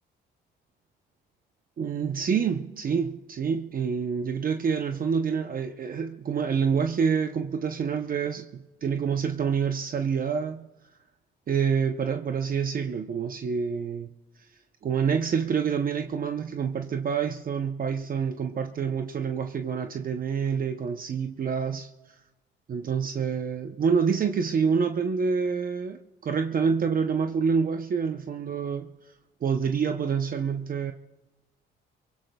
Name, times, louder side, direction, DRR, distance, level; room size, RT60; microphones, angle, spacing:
voice 1, 1.8-10.6 11.5-14.1 14.8-21.9 22.7-28.9 29.4-30.9, right 6 dB, 45° right, 0.7 m, -27 dB
23.5 x 23.5 x 2.3 m
cardioid pair, 90°, 20 cm